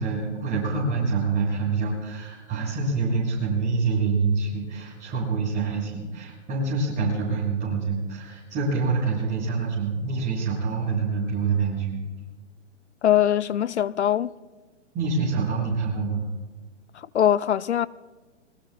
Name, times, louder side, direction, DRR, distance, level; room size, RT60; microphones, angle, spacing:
voice 1, 0.0-12.0 14.9-16.3, right 4 dB, 20° right, 7.0 m, -26 dB
voice 2, 13.0-14.3 17.1-17.9, left 10 dB, 65° left, 0.6 m, -21 dB
27.5 x 21.5 x 2.2 m
figure-of-eight pair, 125°, 37 cm